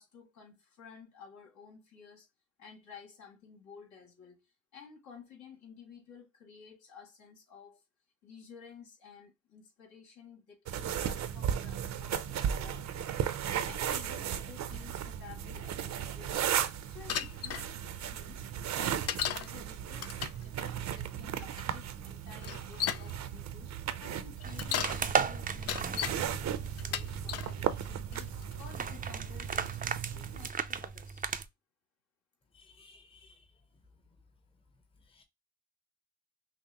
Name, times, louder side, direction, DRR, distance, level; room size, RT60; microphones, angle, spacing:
voice 1, 0.0-2.3 2.6-7.8 8.2-13.1 13.6-16.6 16.8-18.5 18.8-20.2 20.4-31.3, left 6 dB, 70° left, 2.3 m, -53 dB
sound 1, 10.7-30.5, right 9 dB, 65° right, 0.7 m, -36 dB
Bicycle, 17.1-17.6 19.1-19.5 20.0-20.4 21.5-21.6 22.4-23.1 24.4-25.0 25.5-26.2 26.8-27.5 28.1-28.5, left 9 dB, 55° left, 0.6 m, -34 dB
sound 2, 24.4-31.5, right 6 dB, 30° right, 0.5 m, -36 dB
voice 2, 32.5-33.4 35.1-35.2, left 3 dB, 20° left, 0.9 m, -59 dB
5.9 x 2.1 x 2.9 m
cardioid pair, 90°, 30 cm